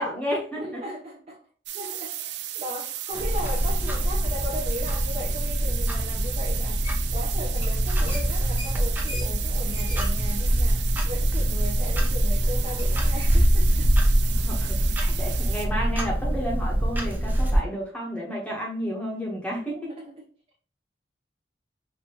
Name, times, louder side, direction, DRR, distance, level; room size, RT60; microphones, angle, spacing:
voice 1, 0.0-0.8 14.3-19.8, equal, 5° left, 1.0 m, -31 dB
voice 2, 0.6-1.4 1.7-13.9 19.7-20.3, left 1 dB, 35° right, 0.9 m, -37 dB
sound 1, 1.7-15.7, right 12 dB, 70° right, 0.5 m, -35 dB
Clock, 3.1-17.6, equal, 10° right, 0.6 m, -24 dB
sound 2, 6.8-7.2 7.5-7.8 8.1-11.5 11.8-11.9 12.8-12.9, left 3 dB, 35° left, 0.9 m, -42 dB
5.2 x 2.8 x 2.9 m
head